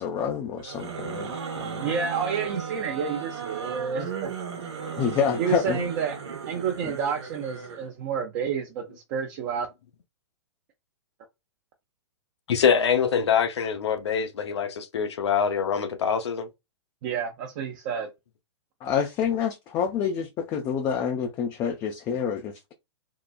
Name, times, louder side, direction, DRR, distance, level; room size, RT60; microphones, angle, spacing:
voice 1, 0.0-1.8 5.0-5.9 6.8-6.9 18.8-22.7, left 7 dB, 25° left, 0.4 m, -28 dB
sound 1, 0.6-7.9, right 6 dB, 75° right, 1.0 m, -35 dB
voice 2, 1.8-4.3 5.4-6.2 6.5-9.7 17.0-18.1, right 6 dB, 40° right, 0.6 m, -29 dB
voice 3, 12.5-16.5, left 7 dB, 75° left, 0.6 m, -24 dB
3.8 x 2.0 x 2.3 m
hypercardioid pair, 120°, 14 cm